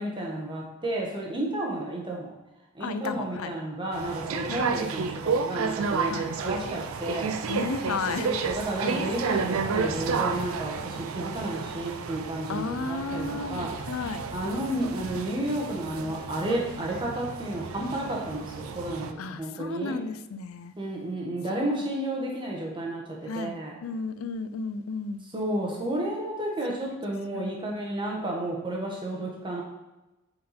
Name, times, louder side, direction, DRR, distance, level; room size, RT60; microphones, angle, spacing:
voice 1, 0.0-2.3 2.7-7.4 8.2-13.8 14.3-20.0 20.8-23.8 25.3-29.6, right 1 dB, 25° right, -2 dB, 1.3 m, -32 dB
voice 2, 2.8-3.5 4.5-4.6 6.1-6.3 7.5-8.3 12.5-13.6 13.9-14.2 19.2-20.7 23.3-25.2 26.9-27.0 27.3-27.5, left 4 dB, 85° left, 11 dB, 0.5 m, -33 dB
sound 1, 3.9-19.1, right 5 dB, 85° right, 0.5 m, -31 dB
7.4 x 4.4 x 4.3 m, 1.0 s
head